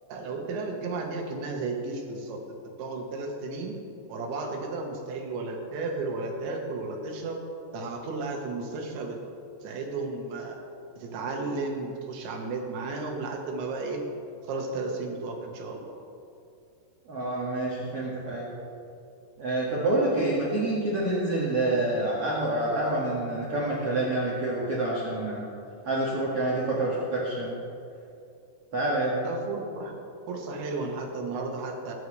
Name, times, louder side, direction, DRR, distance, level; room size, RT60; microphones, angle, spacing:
voice 1, 0.1-3.7 4.1-7.4 7.7-9.2 9.6-10.6 11.0-14.0 14.5-15.9 29.2-30.0 30.3-31.9, right 3 dB, 80° right, 1 dB, 3.7 m, -33 dB
voice 2, 17.1-18.5 19.4-25.4 25.8-27.6 28.7-29.2, right 2 dB, 50° right, -7 dB, 2.0 m, -27 dB
22.0 x 10.0 x 3.3 m, 2.6 s
omnidirectional pair, 5.1 m